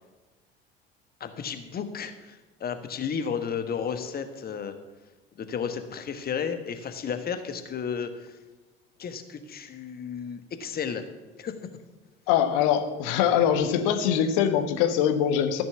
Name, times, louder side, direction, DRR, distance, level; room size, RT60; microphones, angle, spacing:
voice 1, 1.2-4.7 5.4-8.4 9.0-11.0 11.4-11.5, left 7 dB, 30° left, 8 dB, 1.4 m, -33 dB
voice 2, 12.3-15.6, left 9 dB, 60° left, 8 dB, 1.4 m, -23 dB
14.0 x 6.1 x 7.1 m, 1.2 s
figure-of-eight pair, 65°, 29 cm